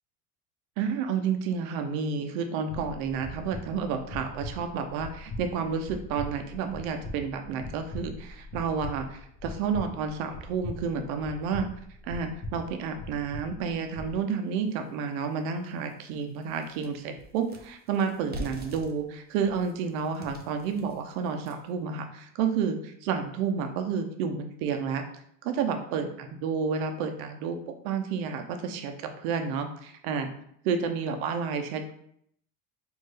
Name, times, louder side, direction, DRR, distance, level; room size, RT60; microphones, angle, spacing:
voice 1, 0.8-11.7 12.0-25.0 25.4-30.3 30.6-31.9, right 6 dB, 80° right, 6 dB, 0.7 m, -30 dB
sound 1, 2.7-14.1, left 2 dB, 40° left, 1.2 m, -41 dB
sound 2, 14.7-14.8 15.3-15.4 15.8-21.8, equal, 25° right, 0.6 m, -45 dB
4.5 x 2.7 x 3.2 m, 0.67 s
supercardioid pair, 110°, 41 cm